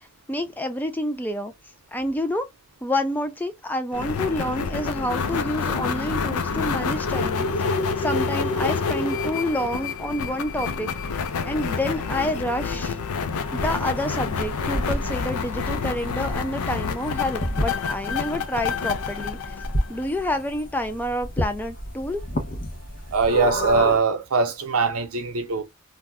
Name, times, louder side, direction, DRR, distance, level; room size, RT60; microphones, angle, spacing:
voice 1, 0.3-1.5 1.9-2.5 2.8-10.9 11.4-13.0 13.5-19.6 19.9-22.2, left 1 dB, 10° left, 0.3 m, -28 dB
sound 1, 3.9-20.4, left 5 dB, 85° left, 0.5 m, -28 dB
sound 2, 13.4-24.0, equal, 40° left, 0.8 m, -32 dB
voice 2, 23.1-25.6, right 4 dB, 80° right, 0.7 m, -22 dB
2.6 x 2.2 x 3.3 m
head